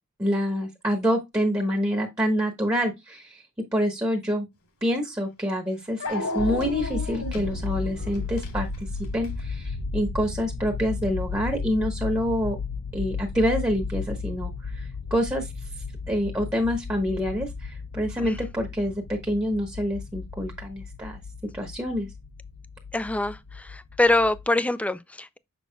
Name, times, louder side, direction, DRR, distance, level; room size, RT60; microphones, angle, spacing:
voice 1, 0.2-3.4 3.7-4.5 4.8-8.7 9.1-12.6 12.9-15.5 16.1-21.2 21.5-22.1, equal, 15° right, 1.2 m, -27 dB
Dog, 4.9-5.0 6.0-9.4, left 1 dB, 85° left, 2.8 m, -33 dB
sound 1, 6.4-24.4, left 4 dB, 65° left, 0.8 m, -34 dB
voice 2, 22.9-25.4, left 2 dB, 5° left, 0.3 m, -24 dB
6.9 x 6.2 x 2.3 m
head